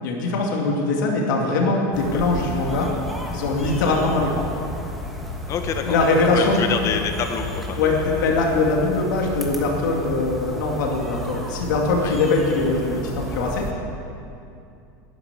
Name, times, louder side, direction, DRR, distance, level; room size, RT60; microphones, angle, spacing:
voice 1, 0.0-2.9 3.3-4.5 5.8-6.6 7.8-13.7, left 3 dB, 85° left, 0 dB, 2.5 m, -22 dB
Backyard in OK, 1.9-13.7, left 1 dB, ahead, 1.4 m, -32 dB
voice 2, 5.5-6.0 6.3-8.2 8.5-8.6 12.0-12.3 12.9-13.0, left 7 dB, 30° left, 6 dB, 1.3 m, -28 dB
12.5 x 10.5 x 8.8 m, 2.6 s
supercardioid pair, 155°, 10 cm